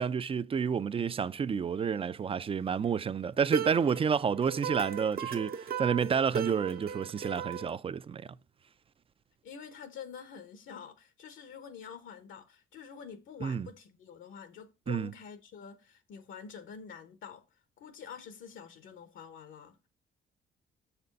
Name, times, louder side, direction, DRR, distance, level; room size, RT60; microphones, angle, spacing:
voice 1, 0.0-8.4 13.4-13.7 14.9-15.1, right 6 dB, 30° right, 0.3 m, -30 dB
sound 1, 3.5-7.7, right 7 dB, 50° right, 0.7 m, -36 dB
voice 2, 9.4-17.4 17.8-19.9, left 7 dB, 75° left, 0.9 m, -47 dB
6.7 x 4.2 x 5.2 m
cardioid pair, 90°, 20 cm